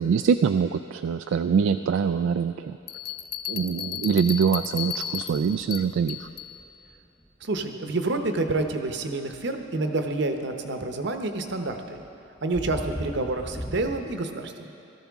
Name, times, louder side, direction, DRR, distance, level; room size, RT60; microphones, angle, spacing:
voice 1, 0.0-2.8 3.5-6.3, right 6 dB, 85° right, 9 dB, 0.3 m, -24 dB
sound 1, 2.8-2.9 3.5-3.9 4.2-7.4 8.4-9.0 9.9-10.4 10.6-14.1, equal, 5° right, 1.0 m, -39 dB
sound 2, 2.9-6.5, left 9 dB, 50° left, 0.5 m, -34 dB
voice 2, 7.4-12.0 12.4-14.7, right 2 dB, 65° right, 5 dB, 0.9 m, -28 dB
17.5 x 13.5 x 3.6 m, 2.8 s
head